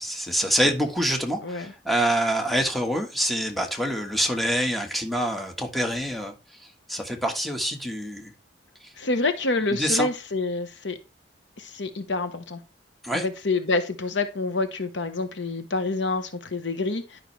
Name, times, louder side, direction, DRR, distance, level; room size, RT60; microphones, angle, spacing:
voice 1, 0.0-6.3 6.9-8.3 9.7-10.1 13.0-13.2, equal, ahead, 1.4 m, -26 dB
voice 2, 9.0-11.0 11.6-12.6 13.1-17.2, left 3 dB, 75° left, 1.2 m, -27 dB
11.5 x 5.7 x 3.3 m
head